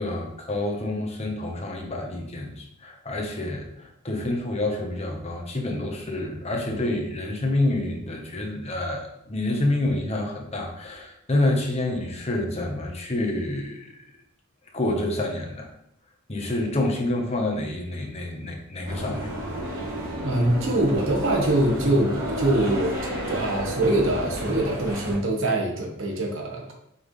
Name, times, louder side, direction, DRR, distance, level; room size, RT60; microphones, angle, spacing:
voice 1, 0.0-13.9 14.7-15.7 16.3-19.3, left 1 dB, 30° left, 1 dB, 1.2 m, -28 dB
sound 1, 18.8-25.2, equal, 40° right, 2.3 m, -31 dB
voice 2, 20.2-22.9 23.3-26.7, right 1 dB, 60° right, 1 dB, 1.4 m, -23 dB
6.0 x 5.6 x 3.3 m, 0.76 s
head